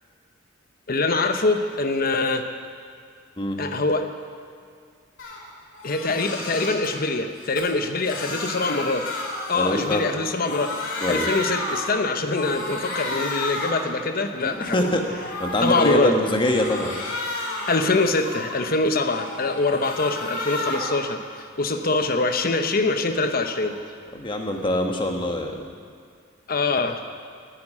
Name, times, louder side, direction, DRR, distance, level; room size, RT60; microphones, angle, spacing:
voice 1, 0.9-2.5 3.6-4.1 5.8-9.1 9.5-14.9 15.6-16.1 17.7-23.8 26.5-27.1, left 3 dB, 45° left, 7 dB, 0.9 m, -24 dB
Crying sobbing, 5.2-5.4 5.7-6.9 7.4-10.2 10.4-12.0 12.3-13.9 14.3-15.9 16.3-18.7 19.1-21.0 21.4-23.8, left 2 dB, 70° left, 2.7 m, -32 dB
voice 2, 9.5-10.0 11.0-11.3 14.4-15.1 15.4-17.0 24.1-25.6, left 1 dB, 25° left, 3 dB, 1.2 m, -24 dB
9.6 x 9.6 x 10.0 m, 2.2 s
head